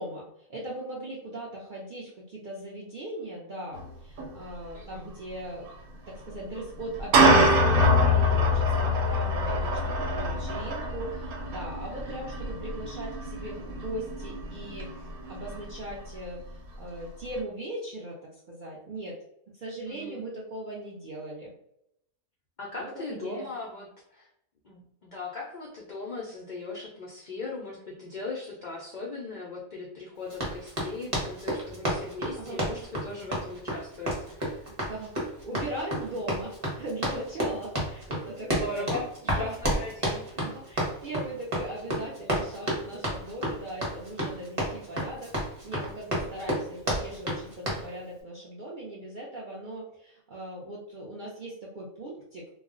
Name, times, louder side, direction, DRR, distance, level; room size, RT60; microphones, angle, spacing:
voice 1, 0.0-5.7 6.1-19.2 19.5-21.5 22.8-23.5 32.4-32.6 34.8-38.9 39.2-39.5 40.3-52.5, right 1 dB, 65° right, -5 dB, 0.5 m, -39 dB
sound 1, 3.7-3.9 4.2-4.3 5.7-5.8 6.8-15.9, left 1 dB, 90° right, 1.1 m, -25 dB
voice 2, 4.7-5.1 19.9-20.2 22.6-24.3 24.6-34.6 38.5-40.3, left 3 dB, 75° left, -3 dB, 0.4 m, -39 dB
Run, 30.3-47.9, equal, 30° right, 0.7 m, -31 dB
2.3 x 2.1 x 3.6 m, 0.78 s
omnidirectional pair, 1.5 m